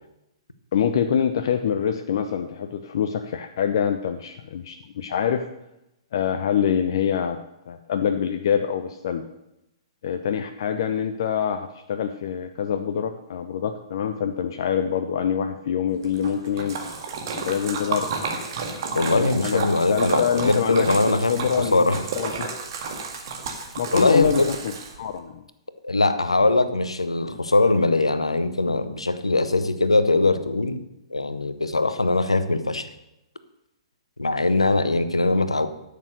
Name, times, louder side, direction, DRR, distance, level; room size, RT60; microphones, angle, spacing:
voice 1, 0.7-5.4 6.1-7.4 7.7-9.2 10.0-16.8 17.3-18.1 19.1-21.9 22.2-22.5 23.8-24.5 25.0-25.4 27.3-27.4 34.8-35.0, left 8 dB, 50° left, 7 dB, 0.7 m, -25 dB
Splash splatter, 16.0-25.2, right 4 dB, 45° right, 1.9 m, -31 dB
voice 2, 18.9-22.0 23.9-24.5 25.8-30.8 31.1-32.9 34.2-35.7, left 2 dB, 80° left, 12 dB, 1.0 m, -21 dB
12.0 x 6.7 x 6.6 m, 0.88 s
figure-of-eight pair, 115°, 3 cm